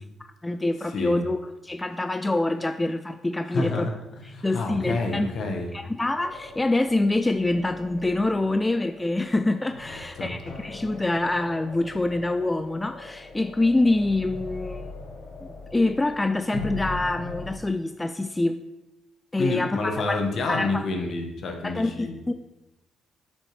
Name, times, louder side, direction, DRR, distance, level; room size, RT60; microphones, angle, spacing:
voice 1, 0.4-3.9 4.2-5.3 5.7-14.9 15.4-18.6 19.3-20.2 20.5-20.8 21.6-22.3, left 2 dB, 15° left, 9 dB, 0.3 m, -26 dB
voice 2, 3.5-3.9 4.3-5.7 10.2-10.4 19.4-22.2, left 3 dB, 60° left, 3 dB, 1.3 m, -28 dB
sound 1, 6.2-17.5, left 2 dB, 80° left, 1.3 m, -40 dB
8.1 x 6.3 x 3.2 m, 0.97 s
cardioid pair, 90°, 0 cm